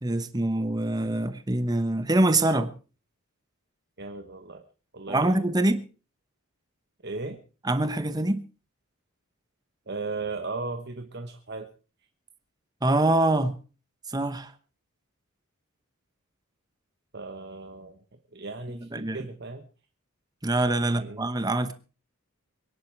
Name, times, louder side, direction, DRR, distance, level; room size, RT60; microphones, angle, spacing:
voice 1, 0.0-2.7 5.1-5.8 7.6-8.4 12.8-13.6 14.1-14.5 18.9-19.3 20.4-21.7, right 2 dB, 20° right, 1.0 m, -24 dB
voice 2, 4.0-4.6 4.9-5.4 7.0-7.4 9.9-11.7 17.1-18.0 18.3-19.6 20.8-21.3, right 3 dB, 50° right, 1.1 m, -36 dB
23.5 x 10.5 x 4.6 m
head